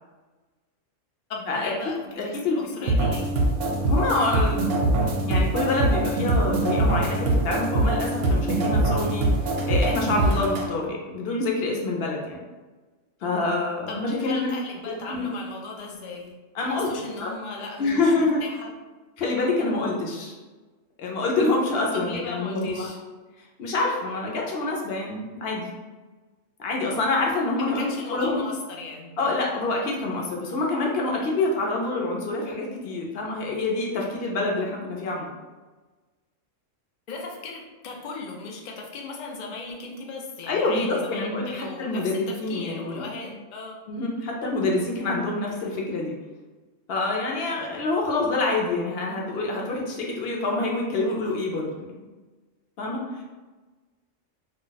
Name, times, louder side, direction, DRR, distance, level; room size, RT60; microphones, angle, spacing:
voice 1, 1.3-3.4 13.9-18.7 21.9-23.0 27.6-29.1 37.1-43.8, left 3 dB, 80° left, 0 dB, 0.4 m, -37 dB
voice 2, 2.2-3.1 3.8-4.6 5.0-12.4 13.2-14.5 15.1-15.3 16.5-17.3 17.8-18.4 19.2-20.3 21.0-22.9 23.6-25.7 26.6-28.4 29.2-35.3 40.5-43.0 43.9-46.1 46.9-51.8 52.8-53.0, left 2 dB, 60° left, -1 dB, 0.7 m, -26 dB
sound 1, 2.9-10.7, right 2 dB, 65° right, 0.7 m, -23 dB
2.3 x 2.2 x 3.9 m, 1.3 s
omnidirectional pair, 1.3 m